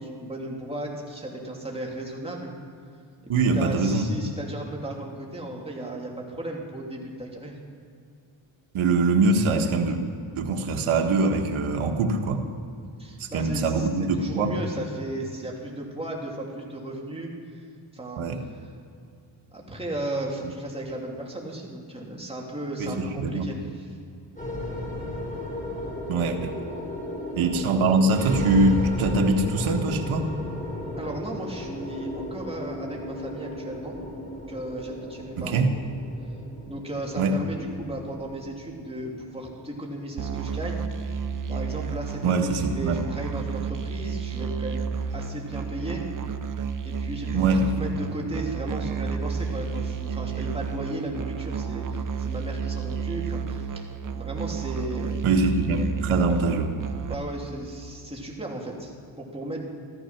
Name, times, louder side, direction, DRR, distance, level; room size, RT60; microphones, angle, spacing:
voice 1, 0.0-2.5 3.5-7.6 13.0-17.6 17.9-18.3 19.5-23.9 26.1-26.4 30.9-33.9 34.5-35.7 36.7-40.8 41.5-44.8 45.1-46.0 46.8-55.2 57.1-59.7, right 1 dB, 10° right, -2 dB, 3.1 m, -35 dB
voice 2, 3.3-4.1 8.7-10.0 10.3-12.4 13.2-14.5 18.2-18.4 22.8-23.5 26.1-26.6 27.4-30.3 35.4-35.7 37.2-37.4 42.2-42.9 47.3-47.7 55.2-56.7, right 3 dB, 85° right, 4 dB, 1.6 m, -23 dB
sound 1, 24.4-42.7, left 1 dB, 15° left, 3.9 m, -35 dB
Musical instrument, 40.2-57.1, right 6 dB, 40° right, 0.9 m, -31 dB
14.0 x 14.0 x 5.9 m, 2.4 s
cardioid pair, 95°, 48 cm